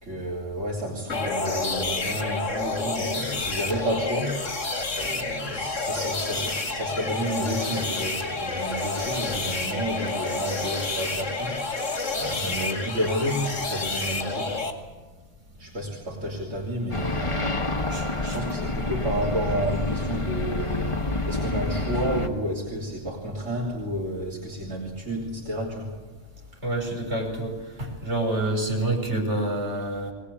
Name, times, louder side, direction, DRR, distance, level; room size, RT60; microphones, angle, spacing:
voice 1, 0.0-4.4 4.9-14.6 15.6-25.9, right 1 dB, 85° right, -4 dB, 3.5 m, -31 dB
sound 1, 1.1-14.7, left 3 dB, 85° left, 2.6 m, -29 dB
sound 2, 16.9-22.3, left 2 dB, 25° left, 1.4 m, -28 dB
voice 2, 17.9-18.4 26.6-30.1, right 2 dB, 65° right, 0 dB, 5.9 m, -28 dB
22.0 x 19.5 x 8.5 m, 1.3 s
omnidirectional pair, 1.2 m